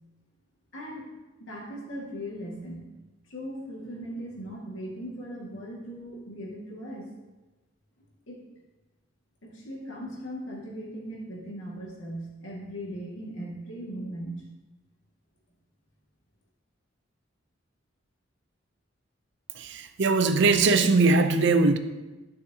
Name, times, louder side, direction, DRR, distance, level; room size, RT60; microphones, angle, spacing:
voice 1, 0.7-1.1 1.4-2.8 3.3-7.1 8.3-8.4 9.4-14.5, equal, 85° left, -3 dB, 2.0 m, -38 dB
voice 2, 19.5-21.8, right 3 dB, 65° right, 10 dB, 0.6 m, -21 dB
11.0 x 6.3 x 2.8 m, 1.1 s
head